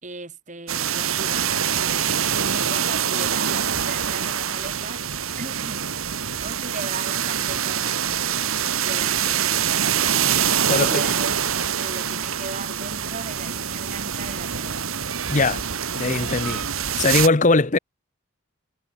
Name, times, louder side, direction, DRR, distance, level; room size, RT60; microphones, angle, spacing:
voice 1, 0.0-1.5 1.8-5.0 5.4-5.8 6.4-8.2 8.7-9.5 10.5-14.8, right 3 dB, 35° right, 2.7 m, -37 dB
sound 1, 0.7-17.3, right 8 dB, 80° right, 1.7 m, -25 dB
voice 2, 10.7-11.0 15.3-15.6 15.9-16.6 17.0-17.8, left 3 dB, 35° left, 0.9 m, -20 dB
head